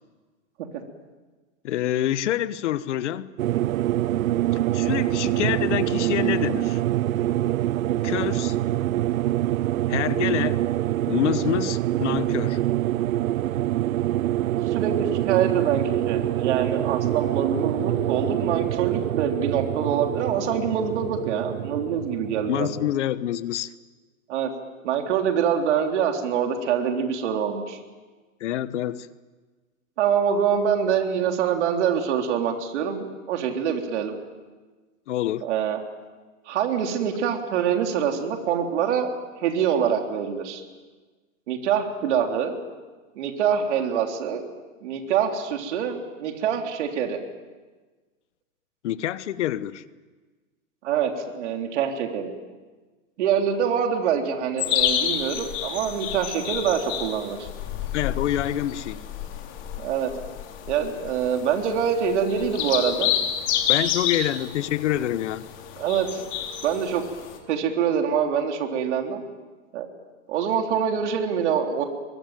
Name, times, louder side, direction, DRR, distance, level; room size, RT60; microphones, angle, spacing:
voice 1, 1.6-3.3 4.7-6.8 8.0-8.6 9.9-10.6 11.1-12.6 22.5-23.7 28.4-29.1 35.1-35.5 48.8-49.8 57.9-59.0 63.7-65.5, left 12 dB, 55° left, 1.1 m, -26 dB
sound 1, 3.4-22.9, right 14 dB, 75° right, 0.7 m, -25 dB
voice 2, 14.7-22.7 24.3-24.5 24.8-27.8 30.0-34.1 35.4-35.8 36.5-39.1 39.4-40.6 41.5-42.6 43.2-44.4 44.8-47.2 50.8-52.3 53.2-57.5 59.8-60.1 60.7-63.1 65.8-66.2 66.6-67.0 67.5-69.2 69.7-69.9 70.3-71.8, right 8 dB, 55° right, 3.6 m, -25 dB
sound 2, 54.6-67.4, left 9 dB, 30° left, 3.2 m, -29 dB
23.0 x 22.0 x 9.3 m
hypercardioid pair, 155°, 41 cm